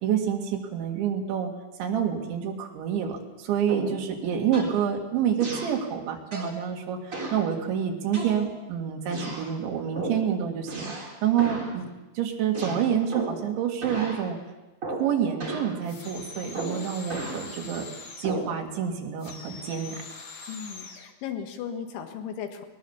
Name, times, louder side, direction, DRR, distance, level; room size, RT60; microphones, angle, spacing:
voice 1, 0.0-1.5 1.8-10.9 11.2-11.9 12.2-14.4 14.9-17.9 18.2-20.0, right 8 dB, 80° right, 3 dB, 4.3 m, -28 dB
sound 1, 3.7-4.0 4.5-4.8 5.4-5.8 6.3-6.6 7.1-7.4 8.1-8.7 9.1-9.5 9.9-10.3 10.7-11.1 11.4-11.7 12.5-13.5 13.8-14.2 14.8-15.1 15.4-15.7 16.5-17.4 18.2-18.5, right 2 dB, 20° right, 3.3 m, -34 dB
sound 2, 15.8-18.4 19.2-21.1, left 3 dB, 70° left, 1.1 m, -43 dB
voice 2, 20.5-22.7, left 7 dB, 85° left, 6 dB, 4.0 m, -36 dB
20.0 x 20.0 x 7.2 m, 1.1 s
omnidirectional pair, 5.2 m